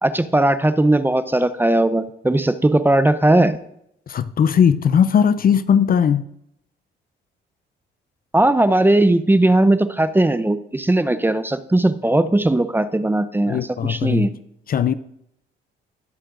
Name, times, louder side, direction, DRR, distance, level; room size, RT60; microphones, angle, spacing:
voice 1, 0.0-3.6 8.3-14.3, right 1 dB, 10° right, 0.6 m, -18 dB
voice 2, 4.1-6.2 13.5-14.3 14.7-14.9, left 7 dB, 45° left, 0.5 m, -18 dB
20.0 x 7.5 x 2.6 m
cardioid pair, 90°, 20 cm